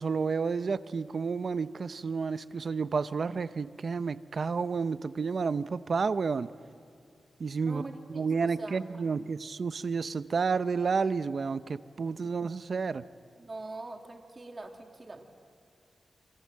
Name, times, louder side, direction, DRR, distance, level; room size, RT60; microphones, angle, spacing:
voice 1, 0.0-6.5 7.4-7.8 8.1-13.0, right 5 dB, 50° right, 14 dB, 0.7 m, -30 dB
voice 2, 7.6-9.1 12.2-12.3 13.4-15.2, right 2 dB, 30° right, 3 dB, 2.5 m, -43 dB
25.5 x 24.5 x 7.6 m, 2.6 s
wide cardioid pair, 125°, 0 cm